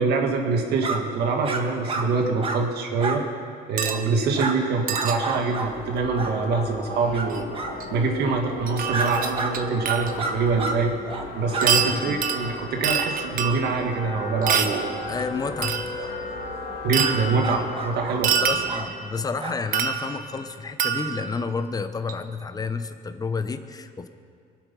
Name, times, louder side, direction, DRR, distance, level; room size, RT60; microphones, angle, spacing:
voice 1, 0.0-3.2 3.7-7.4 7.9-10.9 11.4-14.9 16.8-18.3, right 4 dB, 70° right, 3 dB, 1.9 m, -24 dB
sound 1, 0.8-1.0 1.4-1.6 1.9-2.1 2.4-2.6 3.0-3.2 3.8-4.0 4.3-4.6 4.9-5.7 6.1-6.3 7.1-7.3 7.5-7.7 8.9-9.1 9.3-9.5 10.2-10.8 11.0-11.3 11.5-11.7 17.0-17.1 17.4-18.2 18.7-18.9 19.4-19.6, right 4 dB, 35° right, 1.6 m, -29 dB
sound 2, 3.8-4.1 4.9-5.2 7.3-7.4 7.8-7.9 8.7-10.2 10.7-10.8 11.6-13.9 14.4-14.9 15.6-16.0 16.9-17.4 18.2-19.1 19.7-20.3 20.8-21.3 22.1-22.2, right 8 dB, 55° right, 1.1 m, -26 dB
sound 3, 5.3-18.8, left 3 dB, 65° left, 2.0 m, -35 dB
voice 2, 11.8-12.2 15.1-16.2 18.3-24.1, left 4 dB, 20° left, 10 dB, 0.8 m, -30 dB
23.0 x 8.3 x 5.5 m, 2.3 s
cardioid pair, 110°, 17 cm